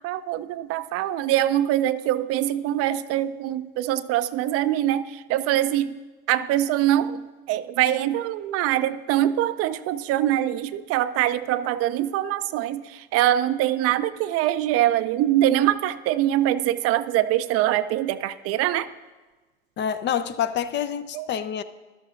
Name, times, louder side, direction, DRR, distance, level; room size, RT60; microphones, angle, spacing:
voice 1, 0.0-5.9 6.3-7.2 7.5-12.8 13.1-18.9 21.1-21.2, right 13 dB, 50° right, 13 dB, 0.5 m, -23 dB
voice 2, 19.8-21.6, left 9 dB, 35° left, 12 dB, 0.5 m, -27 dB
13.5 x 12.0 x 2.5 m, 1.3 s
hypercardioid pair, 75°, 31 cm